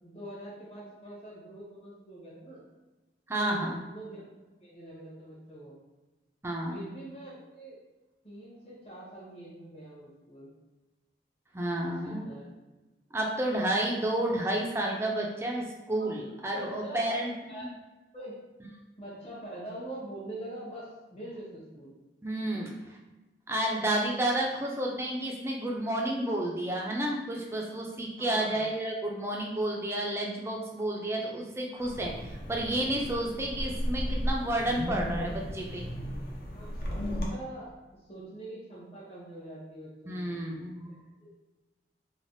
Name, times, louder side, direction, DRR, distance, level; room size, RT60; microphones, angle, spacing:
voice 1, 0.0-2.6 3.3-4.2 4.6-5.8 6.7-7.8 8.2-10.5 11.8-12.5 16.0-16.1 16.5-17.2 17.5-17.7 18.1-18.4 19.0-22.0 22.5-22.6 28.2-28.6 36.4-40.4, right 1 dB, 35° left, -6 dB, 0.9 m, -44 dB
voice 2, 3.3-3.8 6.4-6.9 11.5-12.3 13.1-17.7 22.2-22.7 23.5-35.8 40.1-40.9, right 1 dB, 15° right, -1 dB, 0.4 m, -31 dB
Wind, 31.8-37.3, equal, 55° left, 0.5 m, -34 dB
3.3 x 2.2 x 2.6 m, 1.1 s
head